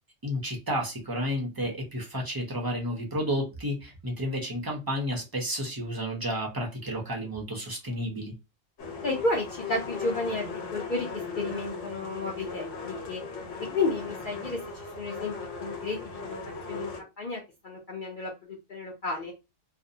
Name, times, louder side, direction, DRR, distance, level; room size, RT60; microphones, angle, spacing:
voice 1, 0.2-8.3, equal, 40° right, 0 dB, 0.3 m, -31 dB
sound 1, 8.8-17.0, left 4 dB, 70° left, 1.1 m, -38 dB
voice 2, 9.0-11.1 11.4-13.2 13.7-14.6 15.0-16.4 16.7-16.9 17.2-19.3, left 2 dB, 55° left, -1 dB, 0.6 m, -32 dB
2.6 x 2.0 x 2.6 m, 0.26 s
omnidirectional pair, 1.3 m